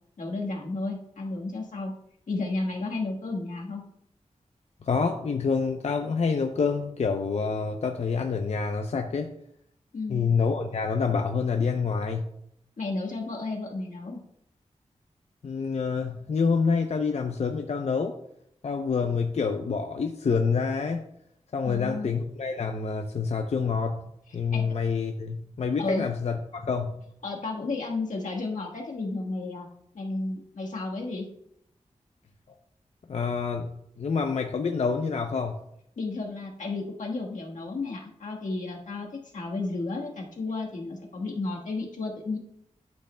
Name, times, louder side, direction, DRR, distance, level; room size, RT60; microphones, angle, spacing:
voice 1, 0.2-1.9 2.3-3.8 9.9-10.3 12.8-14.2 21.6-22.1 24.5-24.7 25.8-26.1 27.2-29.7 29.9-31.2 36.0-39.1 39.3-42.4, left 3 dB, 85° left, -1 dB, 1.4 m, -32 dB
voice 2, 4.8-9.3 10.1-12.3 15.4-18.1 18.6-21.0 21.5-24.0 24.3-27.0 33.1-35.6, left 5 dB, 60° left, 4 dB, 0.5 m, -27 dB
12.0 x 6.3 x 2.2 m, 0.73 s
wide cardioid pair, 115°, 13 cm